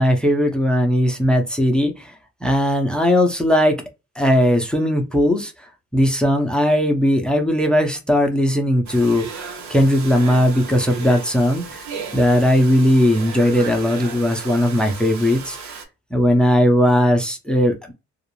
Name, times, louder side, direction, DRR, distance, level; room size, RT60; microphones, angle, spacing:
voice 1, 0.0-2.1 2.4-3.8 4.2-5.5 5.9-11.8 12.1-15.7 16.1-17.9, equal, 5° left, 0.7 m, -18 dB
Domestic sounds home sounds, 8.9-15.9, right 5 dB, 65° right, 0.8 m, -35 dB
2.4 x 2.1 x 3.0 m
cardioid pair, 90°, 30 cm